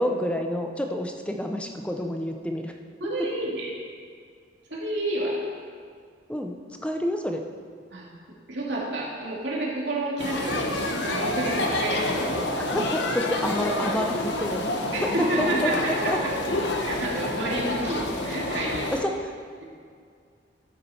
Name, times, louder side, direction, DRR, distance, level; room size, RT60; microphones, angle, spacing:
voice 1, 0.0-2.7 6.3-6.5 6.8-7.4 12.5-14.6 15.0-15.1 15.4-15.7 16.1-16.2 18.9-19.3, equal, 5° left, 4 dB, 0.6 m, -28 dB
voice 2, 3.0-3.7 4.7-5.4 7.9-8.1 8.5-12.5 14.9-16.3 16.8-18.9, right 2 dB, 65° right, -4 dB, 2.6 m, -30 dB
sound 1, 10.2-19.0, left 1 dB, 65° left, 1.1 m, -28 dB
14.0 x 8.5 x 4.4 m, 2.2 s
head